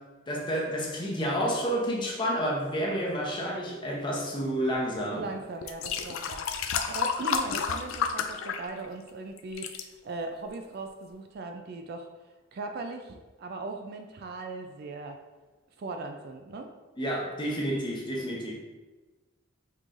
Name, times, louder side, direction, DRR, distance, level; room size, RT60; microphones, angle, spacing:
voice 1, 0.3-5.3 17.0-18.5, equal, 25° left, -3 dB, 0.8 m, -30 dB
sound 1, 5.0-5.1 5.6-9.1 9.4-9.8 10.5-10.6, left 6 dB, 85° left, 0.4 m, -31 dB
voice 2, 5.1-6.5 6.9-12.1 12.5-15.2 15.8-16.7, right 3 dB, 50° right, 5 dB, 0.4 m, -38 dB
5.5 x 3.1 x 2.5 m, 1.2 s
head